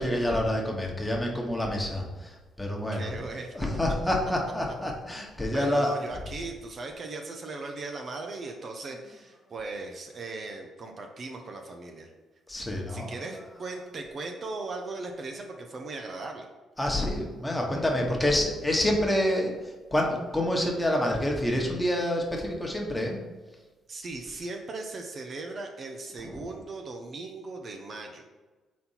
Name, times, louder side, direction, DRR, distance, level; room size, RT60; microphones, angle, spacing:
voice 1, 0.0-3.1 3.5-5.9 12.5-13.2 16.8-19.5 19.9-23.2 26.2-26.4, left 1 dB, 10° left, 0 dB, 1.3 m, -27 dB
voice 2, 2.9-3.5 5.5-12.1 12.9-16.5 23.9-28.2, right 3 dB, 45° right, 3 dB, 0.7 m, -38 dB
4.3 x 4.2 x 5.7 m, 1.2 s
cardioid pair, 90°, 0 cm